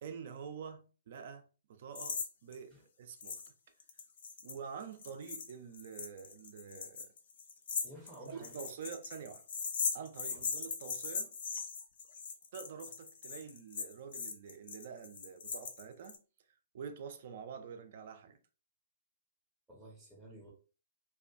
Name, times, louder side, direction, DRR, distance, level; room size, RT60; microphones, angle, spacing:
voice 1, 0.0-3.4 4.4-7.1 8.2-9.4 9.9-11.3 12.5-16.2 16.7-18.4, right 6 dB, 50° right, 0.5 m, -47 dB
sound 1, 2.0-2.3 2.5-2.6 3.2-3.5 3.8-16.2, left 5 dB, 55° left, 0.5 m, -39 dB
voice 2, 7.8-8.6 10.3-10.4 19.7-20.5, equal, 10° right, 0.7 m, -53 dB
2.3 x 2.3 x 2.5 m
figure-of-eight pair, 120°, 0 cm